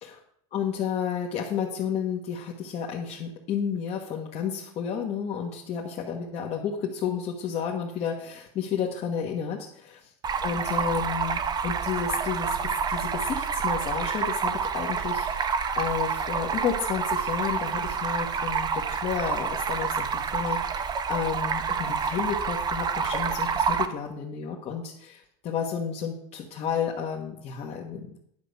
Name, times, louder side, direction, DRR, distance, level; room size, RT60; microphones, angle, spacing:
voice 1, 0.5-10.1 10.4-28.2, left 7 dB, 45° left, -2 dB, 1.4 m, -31 dB
Stream, 10.2-23.9, right 6 dB, 30° right, 0.8 m, -28 dB
10.5 x 5.0 x 6.8 m, 0.68 s
supercardioid pair, 120°, 15 cm